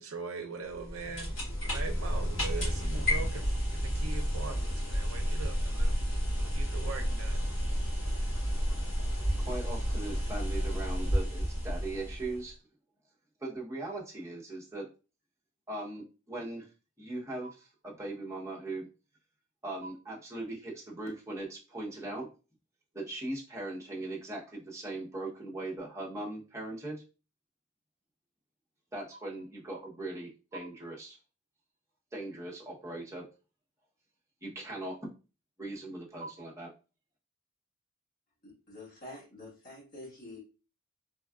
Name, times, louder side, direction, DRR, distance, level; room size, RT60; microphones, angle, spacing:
voice 1, 0.0-1.3 1.7-3.4 3.7-5.9 6.4-7.4, right 4 dB, 75° right, 0.5 m, -41 dB
sound 1, 0.7-12.5, equal, 65° left, 1.6 m, -31 dB
voice 2, 8.4-12.5 13.4-14.9 15.7-16.7 17.0-18.9 19.6-22.3 22.9-27.0 28.9-31.2 32.1-33.3 34.4-35.1 35.6-36.7, right 2 dB, 15° right, 0.8 m, -39 dB
voice 3, 38.4-40.4, left 2 dB, 45° left, 1.4 m, -47 dB
3.4 x 2.2 x 2.3 m
head